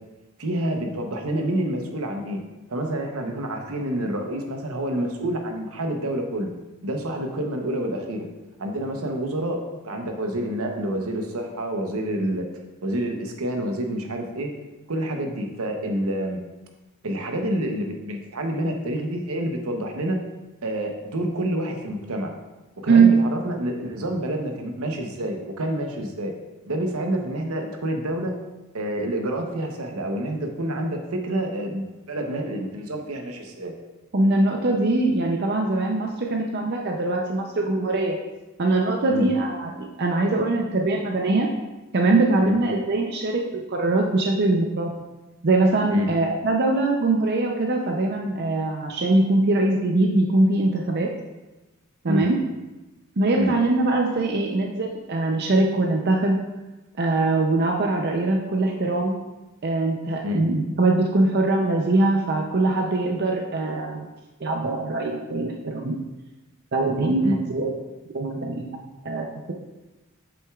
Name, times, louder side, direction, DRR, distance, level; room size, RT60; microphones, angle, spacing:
voice 1, 0.4-2.4 2.7-6.5 6.8-8.3 8.6-12.5 12.8-14.5 14.9-16.4 17.0-20.2 20.6-22.3 22.8-26.3 26.7-28.3 28.7-33.7 39.1-39.3 42.4-42.6 45.9-46.1 52.1-52.2 53.3-53.5 60.2-60.4 67.2-67.4, right 1 dB, 75° right, 3 dB, 0.9 m, -28 dB
voice 2, 34.1-38.2 38.6-41.5 41.9-44.9 45.4-51.1 52.0-52.4 53.2-56.4 57.0-59.2 59.6-64.1 64.4-66.0 66.7-67.7 68.1-69.5, right 2 dB, 50° right, 1 dB, 0.6 m, -22 dB
7.8 x 6.1 x 2.4 m, 1.1 s
head